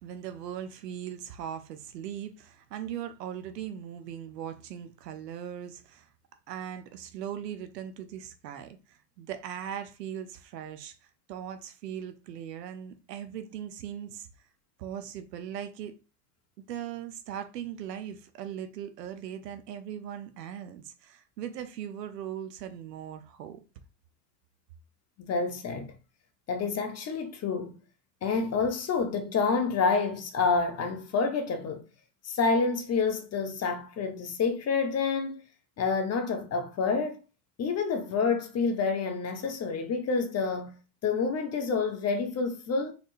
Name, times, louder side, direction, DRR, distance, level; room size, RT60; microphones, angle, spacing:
voice 1, 0.0-6.1 6.5-10.9 11.3-14.3 14.8-16.0 16.7-23.6, right 9 dB, 75° right, 0.8 m, -39 dB
voice 2, 25.3-25.9 26.5-27.7 28.2-31.8 32.2-35.4 35.8-37.2 37.6-40.7 41.0-42.9, left 4 dB, 30° left, 1.1 m, -28 dB
4.1 x 3.4 x 2.6 m
hypercardioid pair, 85°, 49 cm